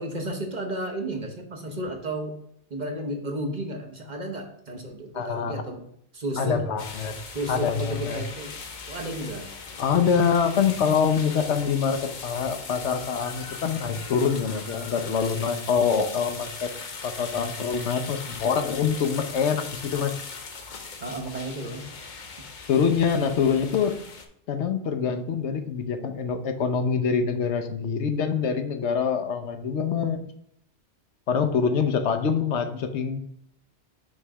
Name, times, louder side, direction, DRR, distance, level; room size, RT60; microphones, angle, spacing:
voice 1, 0.0-2.4 2.7-5.8 6.1-6.6 7.3-8.6 8.9-9.5 21.0-21.9, right 1 dB, 40° right, 2 dB, 1.0 m, -33 dB
voice 2, 5.1-5.6 6.4-7.1 7.5-8.2 9.8-16.7 17.0-20.1 22.7-24.0 24.5-30.2 31.3-33.2, left 6 dB, 80° left, 7 dB, 1.0 m, -25 dB
sound 1, 6.8-24.3, left 4 dB, 45° left, 0.8 m, -39 dB
6.2 x 3.3 x 4.8 m, 0.73 s
omnidirectional pair, 1.2 m